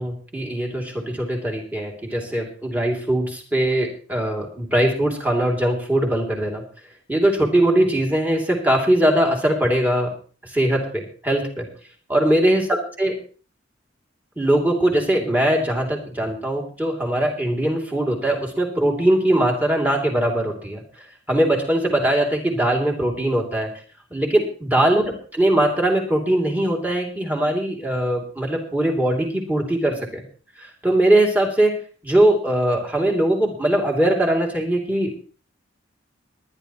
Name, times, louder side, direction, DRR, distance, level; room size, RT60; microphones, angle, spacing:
voice 1, 0.0-6.6 7.1-10.1 10.4-11.7 12.1-13.1 14.4-20.8 21.3-23.7 24.1-30.2 30.6-31.8 32.0-35.1, right 1 dB, 10° right, 1 dB, 2.7 m, -21 dB
21.5 x 10.5 x 3.0 m, 0.39 s
head